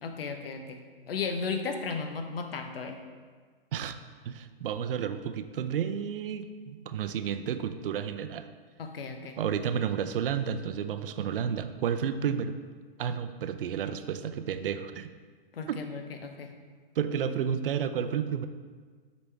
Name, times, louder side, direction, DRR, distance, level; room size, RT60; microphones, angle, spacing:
voice 1, 0.0-0.8 1.1-3.0 8.8-9.4 15.5-16.5, left 5 dB, 75° left, 5 dB, 0.9 m, -35 dB
voice 2, 4.3-8.5 9.4-12.6 13.0-15.1 15.7-15.8 17.0-18.5, right 8 dB, 65° right, 10 dB, 0.6 m, -31 dB
8.2 x 5.2 x 3.4 m, 1.6 s
hypercardioid pair, 140°, 29 cm